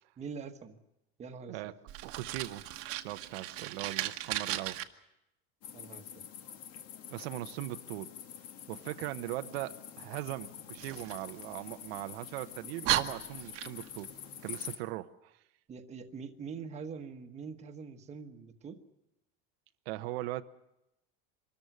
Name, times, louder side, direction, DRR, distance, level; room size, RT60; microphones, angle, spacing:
voice 1, 0.2-0.8 1.2-1.7 5.7-6.1 15.7-18.8, right 5 dB, 20° right, 6 dB, 1.3 m, -44 dB
Fire, 1.9-4.8 10.8-12.0 12.5-12.6 12.8-14.0, right 14 dB, 50° right, 1.3 m, -35 dB
voice 2, 2.0-2.6 3.0-4.8 7.1-8.1 8.7-14.1 14.4-15.4 19.9-20.4, right 16 dB, 80° right, 9 dB, 0.9 m, -39 dB
sound 1, 5.6-14.8, left 9 dB, 50° left, 1.9 m, -47 dB
25.0 x 14.0 x 9.4 m, 0.89 s
cardioid pair, 150°, 30 cm